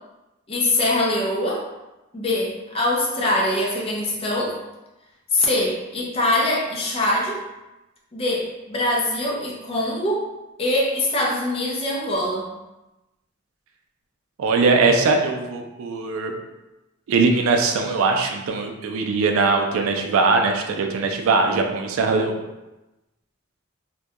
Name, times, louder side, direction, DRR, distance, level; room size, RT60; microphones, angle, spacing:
voice 1, 0.5-1.7 2.1-4.6 5.3-7.4 8.1-10.3 10.6-12.5, left 1 dB, 30° left, -2 dB, 0.4 m, -23 dB
voice 2, 14.4-16.3 17.1-22.5, right 4 dB, 80° right, 3 dB, 0.3 m, -21 dB
2.2 x 2.2 x 2.7 m, 1.0 s
head